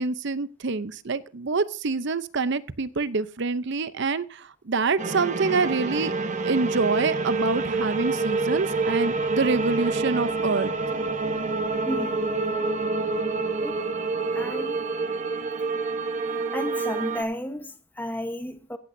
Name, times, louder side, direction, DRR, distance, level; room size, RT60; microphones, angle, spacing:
voice 1, 0.0-6.1 6.4-10.7, right 4 dB, 55° right, 0.7 m, -26 dB
sound 1, 5.0-17.2, right 3 dB, 35° right, 1.1 m, -27 dB
voice 2, 11.8-12.3 13.6-13.8 14.3-14.8 16.5-18.8, equal, 10° left, 1.1 m, -33 dB
16.0 x 15.0 x 2.7 m
head